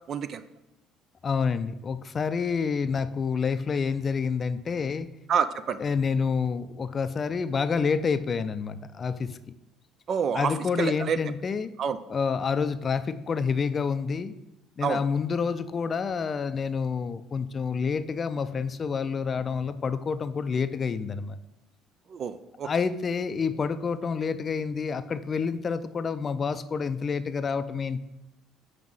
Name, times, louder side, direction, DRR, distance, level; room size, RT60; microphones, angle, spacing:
voice 1, 0.1-0.4 5.3-5.8 10.1-11.2 11.8-12.0 14.8-15.0 22.1-22.7, right 7 dB, 50° right, 12 dB, 0.5 m, -28 dB
voice 2, 1.2-5.1 5.8-9.3 10.3-11.7 12.1-14.3 14.8-21.4 22.6-28.0, left 5 dB, 40° left, 12 dB, 0.4 m, -28 dB
5.5 x 5.0 x 6.2 m, 0.93 s
supercardioid pair, 75°, 0 cm